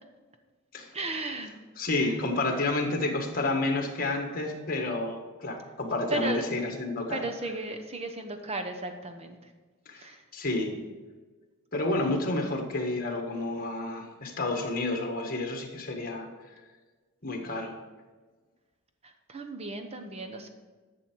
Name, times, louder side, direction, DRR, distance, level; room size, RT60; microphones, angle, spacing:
voice 1, 0.9-1.5 2.0-2.2 6.1-6.5 7.1-9.5 9.9-10.2 19.0-20.5, right 2 dB, 30° right, 5 dB, 1.0 m, -35 dB
voice 2, 1.8-7.2 9.8-10.1 10.3-10.8 11.7-16.3 17.2-17.7, left 2 dB, 40° left, 3 dB, 1.6 m, -30 dB
11.0 x 7.0 x 4.6 m, 1.4 s
head